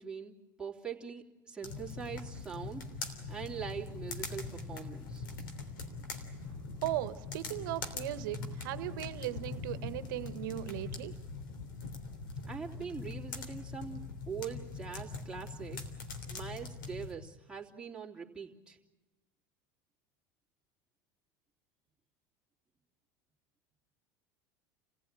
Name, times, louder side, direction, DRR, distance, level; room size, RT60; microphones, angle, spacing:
voice 1, 0.0-5.2 12.5-15.8 16.3-18.8, right 6 dB, 10° right, -3 dB, 3.0 m, -43 dB
sound 1, 1.6-17.1, left 4 dB, 85° left, 3.2 m, -42 dB
voice 2, 6.8-11.1, right 15 dB, 75° right, 12 dB, 1.1 m, -37 dB
28.5 x 16.0 x 8.9 m, 1.1 s
supercardioid pair, 100°, 11 cm